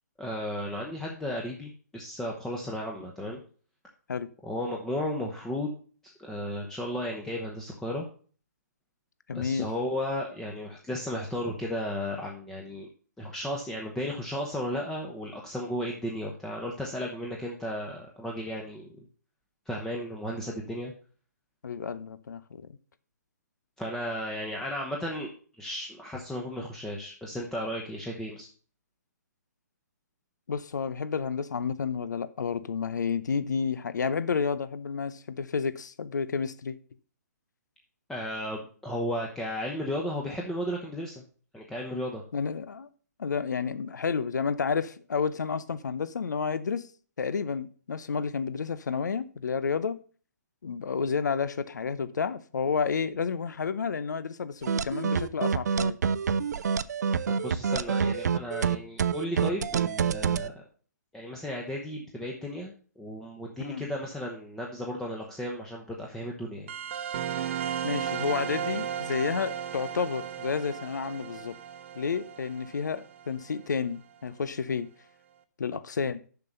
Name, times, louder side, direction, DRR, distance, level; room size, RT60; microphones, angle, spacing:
voice 1, 0.2-3.4 4.4-5.8 6.0-8.1 9.3-12.9 13.2-19.0 19.7-20.9 23.8-25.3 25.6-28.5 38.1-41.2 41.5-42.2 57.3-60.6 61.1-66.7, left 1 dB, 5° left, 0.9 m, -34 dB
voice 2, 9.3-9.7 21.6-22.7 30.5-36.8 42.3-42.9 43.2-46.9 47.2-50.0 50.6-56.0 63.6-63.9 67.8-71.6 72.0-74.9 75.6-76.2, left 5 dB, 75° left, 0.6 m, -30 dB
sound 1, 54.6-60.5, right 6 dB, 65° right, 0.6 m, -27 dB
sound 2, 66.7-73.8, right 9 dB, 40° right, 0.9 m, -35 dB
7.0 x 5.8 x 6.7 m
hypercardioid pair, 145°, 10 cm